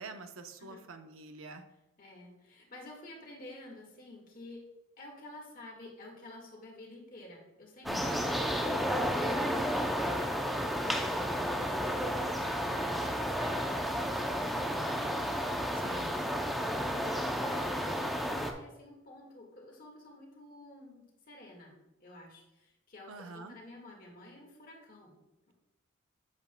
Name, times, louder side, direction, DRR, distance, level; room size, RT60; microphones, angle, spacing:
voice 1, 0.0-1.6 7.9-8.4 15.8-16.2 23.1-23.6, right 3 dB, 75° right, 7 dB, 0.7 m, -46 dB
voice 2, 2.0-4.6 5.0-15.3 16.3-21.7 22.0-25.1 25.5-25.6, left 1 dB, 40° left, 0 dB, 1.6 m, -51 dB
sound 1, 7.9-18.5, equal, ahead, 0.4 m, -32 dB
8.2 x 7.3 x 2.2 m, 0.93 s
head